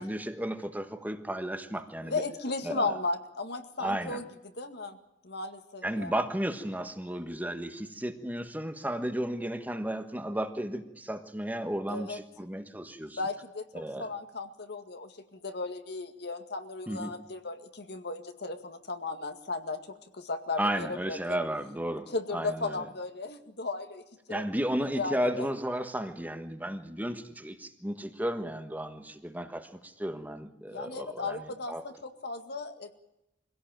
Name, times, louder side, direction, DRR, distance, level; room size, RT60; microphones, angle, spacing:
voice 1, 0.0-2.2 2.6-2.9 3.8-4.2 5.8-13.2 13.7-14.1 16.9-17.1 20.6-22.8 24.3-31.8, right 1 dB, 10° right, 8 dB, 1.3 m, -34 dB
voice 2, 2.0-4.2 4.6-5.0 5.2-6.1 11.9-12.2 13.2-13.6 14.0-19.8 20.1-21.2 22.1-24.0 24.3-24.5 25.0-25.5 30.7-32.9, left 3 dB, 65° left, 7 dB, 2.0 m, -35 dB
23.0 x 17.0 x 9.1 m, 0.88 s
head